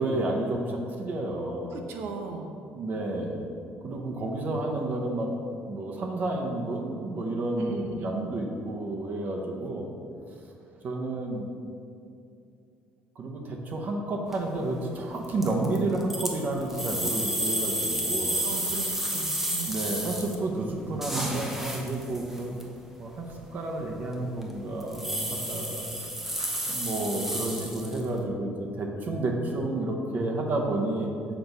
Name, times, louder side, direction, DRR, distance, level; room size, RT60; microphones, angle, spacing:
voice 1, 0.0-1.8 2.7-3.4 3.8-5.3 5.7-9.9 10.8-11.5 13.2-18.4 19.7-22.6 23.0-25.9 26.4-31.1, right 2 dB, 50° right, 0 dB, 0.8 m, -30 dB
voice 2, 1.7-2.6 7.6-8.3 18.4-19.8, right 4 dB, 85° right, 4 dB, 0.7 m, -38 dB
sound 1, 14.3-14.6 15.2-20.3 20.7-22.6 23.2-23.3 23.8-24.1 24.4-24.5 24.8-28.2, right 1 dB, 5° right, 0.7 m, -31 dB
6.1 x 3.4 x 5.3 m, 2.5 s
cardioid pair, 115°, 4 cm